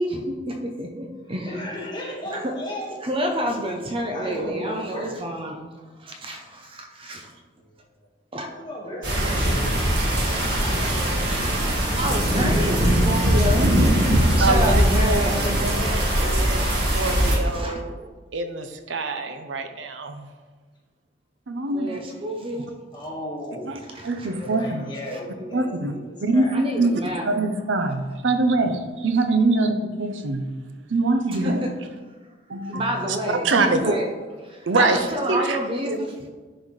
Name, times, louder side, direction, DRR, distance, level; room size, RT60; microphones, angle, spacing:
voice 1, 0.0-1.6 2.3-2.5 3.0-5.6 6.0-7.3 8.3-8.5 9.4-9.6 11.0-14.1 14.4-16.1 17.0-17.8 21.7-22.8 23.9-24.3 26.5-27.3 31.4-31.7 32.7-34.1 34.4-35.9, equal, 30° right, 2 dB, 0.6 m, -29 dB
voice 2, 1.2-3.1 4.0-5.1 5.4-5.5 7.7-7.8 8.4-9.7 10.0-10.3 22.9-23.7 24.3-26.5, equal, 25° left, -3 dB, 1.6 m, -35 dB
sound 1, 9.0-17.4, equal, 65° right, 1.7 m, -21 dB
voice 3, 14.4-20.2 21.5-22.0 22.6-22.7 23.7-24.8 25.5-26.5 26.8-30.5 30.9-31.6 32.5-34.0 34.7-35.6 35.9-36.0, right 3 dB, 90° right, 7 dB, 0.6 m, -24 dB
10.5 x 4.0 x 3.2 m, 1.3 s
head